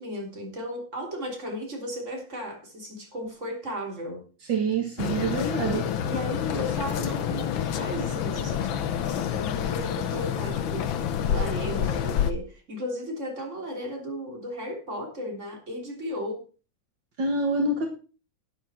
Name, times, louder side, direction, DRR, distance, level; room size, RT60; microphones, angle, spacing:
voice 1, 0.0-4.3 5.5-16.4, equal, 35° right, 3.9 m, -35 dB
voice 2, 4.5-5.8 17.2-17.9, right 3 dB, 70° right, 2.6 m, -26 dB
sound 1, 5.0-12.3, left 9 dB, 90° left, 1.7 m, -28 dB
12.0 x 9.7 x 4.5 m
omnidirectional pair, 2.1 m